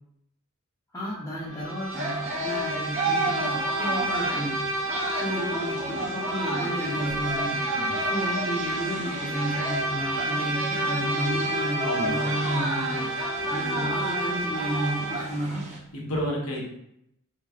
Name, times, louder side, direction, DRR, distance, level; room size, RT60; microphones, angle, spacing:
voice 1, 0.9-4.6 5.1-7.6 8.0-13.2 13.5-15.7, equal, 15° left, -8 dB, 0.5 m, -32 dB
Bowed string instrument, 1.5-15.4, right 1 dB, 70° right, 0.8 m, -30 dB
sound 1, 1.9-15.8, right 2 dB, 35° right, 0.5 m, -33 dB
voice 2, 7.7-8.1 11.8-12.6 15.9-16.6, equal, 80° left, -2 dB, 0.9 m, -31 dB
3.0 x 2.6 x 2.4 m, 0.77 s
head